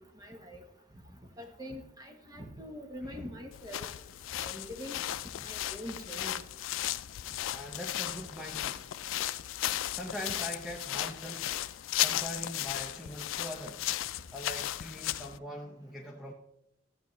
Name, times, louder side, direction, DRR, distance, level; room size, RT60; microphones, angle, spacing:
voice 1, 0.1-0.6 1.4-3.9 4.4-5.0 5.4-6.4, equal, 20° right, 4 dB, 1.1 m, -43 dB
sound 1, 3.5-15.4, left 13 dB, 85° left, 0.3 m, -35 dB
voice 2, 7.5-8.9 9.9-11.6 12.0-13.9 14.3-16.3, left 1 dB, ahead, 0 dB, 0.8 m, -42 dB
14.0 x 8.3 x 3.1 m, 0.79 s
head